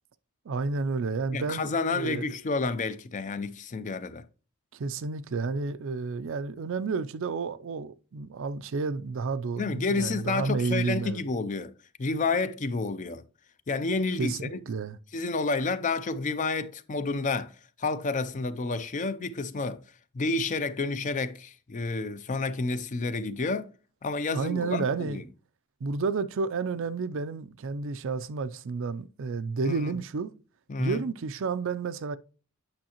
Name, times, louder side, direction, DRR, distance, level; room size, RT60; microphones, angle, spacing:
voice 1, 0.5-2.2 4.7-11.2 14.2-15.0 24.3-25.2 25.8-30.3 30.8-32.2, right 4 dB, 60° right, 0.4 m, -31 dB
voice 2, 1.3-4.2 9.6-11.7 12.0-13.2 13.7-14.6 15.1-19.8 20.1-23.7 24.0-25.2 29.7-29.9 30.7-31.0, left 3 dB, 35° left, 0.4 m, -30 dB
8.7 x 5.6 x 2.9 m
head